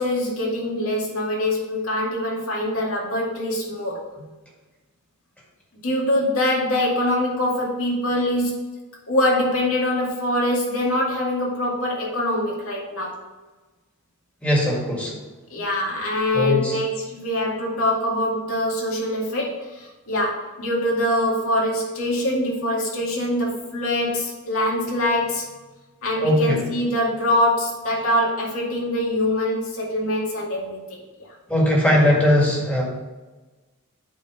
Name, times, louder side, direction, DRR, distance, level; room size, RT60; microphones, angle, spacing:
voice 1, 0.0-4.0 5.8-8.7 9.1-13.2 15.5-25.5 26.0-31.3, left 1 dB, 70° left, -3 dB, 2.3 m, -24 dB
voice 2, 14.4-15.1 16.3-16.8 26.2-26.6 31.5-32.8, left 1 dB, 5° left, -3 dB, 2.0 m, -19 dB
8.4 x 4.2 x 5.0 m, 1.2 s
head